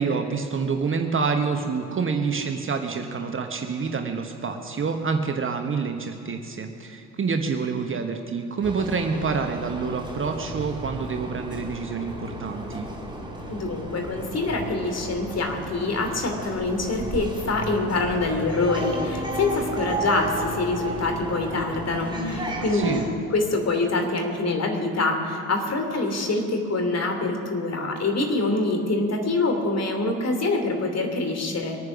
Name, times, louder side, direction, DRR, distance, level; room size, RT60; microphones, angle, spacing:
voice 1, 0.0-12.9 22.7-23.0, right 5 dB, 25° right, 5 dB, 1.1 m, -27 dB
sound 1, 8.6-23.1, right 1 dB, 10° right, 5.2 m, -33 dB
voice 2, 13.5-23.0 23.3-31.8, left 2 dB, 35° left, 4 dB, 2.9 m, -25 dB
23.0 x 9.5 x 6.1 m, 2.5 s
figure-of-eight pair, 55°, 47 cm